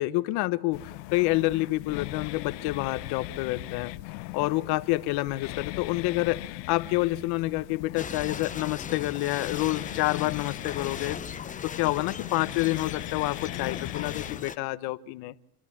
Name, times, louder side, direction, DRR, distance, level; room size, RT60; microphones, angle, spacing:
voice 1, 0.0-3.9 4.3-6.4 6.7-11.2 11.6-15.3, left 19 dB, 50° left, 1.2 m, -28 dB
sound 1, 0.7-14.4, left 21 dB, 75° left, 0.9 m, -39 dB
sound 2, 8.0-14.6, left 7 dB, 15° left, 0.9 m, -39 dB
28.5 x 12.5 x 8.7 m
supercardioid pair, 135°, 49 cm